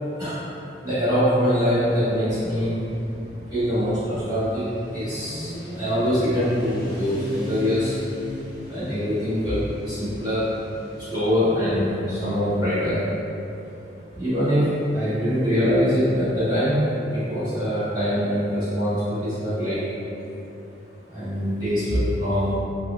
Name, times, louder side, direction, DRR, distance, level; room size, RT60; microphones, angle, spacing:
voice 1, 0.8-2.7 3.5-8.0 8.6-10.5 10.9-13.0 14.1-19.8 21.1-22.5, equal, 25° right, -16 dB, 1.4 m, -23 dB
Motorcycle, 1.7-13.3, left 1 dB, 25° left, 0.7 m, -38 dB
3.4 x 2.2 x 3.4 m, 2.8 s
head